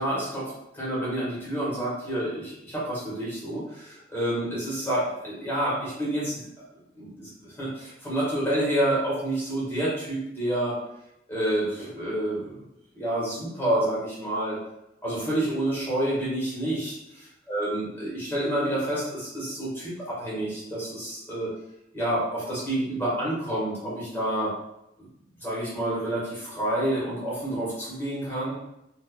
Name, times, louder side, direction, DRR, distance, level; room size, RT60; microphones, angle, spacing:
voice 1, 0.0-6.4 6.9-10.8 11.3-12.6 12.9-14.6 15.0-16.9 17.5-21.5 21.9-24.5 25.4-28.5, right 1 dB, 15° left, -8 dB, 1.5 m, -28 dB
4.3 x 2.7 x 2.2 m, 0.85 s
head